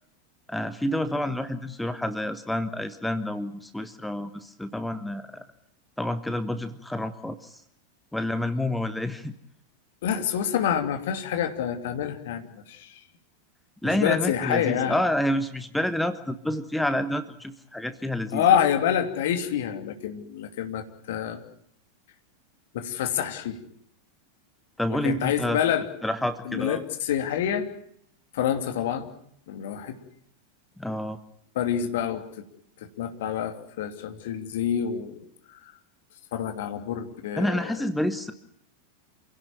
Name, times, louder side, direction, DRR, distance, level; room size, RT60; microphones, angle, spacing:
voice 1, 0.5-5.4 6.0-7.6 8.1-9.3 13.8-18.4 24.8-25.6 26.0-26.8 30.8-31.2 37.4-38.3, left 1 dB, 5° left, 11 dB, 1.3 m, -28 dB
voice 2, 10.0-13.0 13.8-15.0 18.3-21.4 22.7-23.6 24.9-25.8 26.4-27.7 28.3-29.1 29.5-30.0 31.5-32.4 33.0-35.2 36.3-37.7, left 9 dB, 55° left, 6 dB, 2.9 m, -27 dB
28.5 x 17.0 x 9.1 m, 0.69 s
figure-of-eight pair, 90°, 0 cm